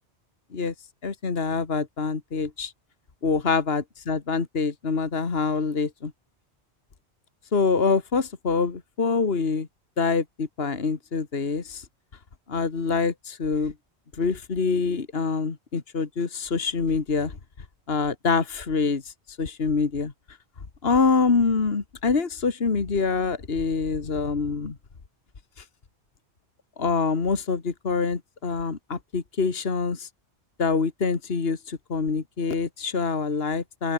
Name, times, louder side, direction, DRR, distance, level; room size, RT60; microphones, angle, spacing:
voice 1, 1.0-2.7 3.2-6.1 7.5-9.7 10.0-11.8 12.5-13.7 14.2-17.3 17.9-20.1 20.8-24.8 25.6-25.7 26.8-30.1 30.6-33.9, left 4 dB, 60° left, 2.0 m, -25 dB
open air
omnidirectional pair, 1.1 m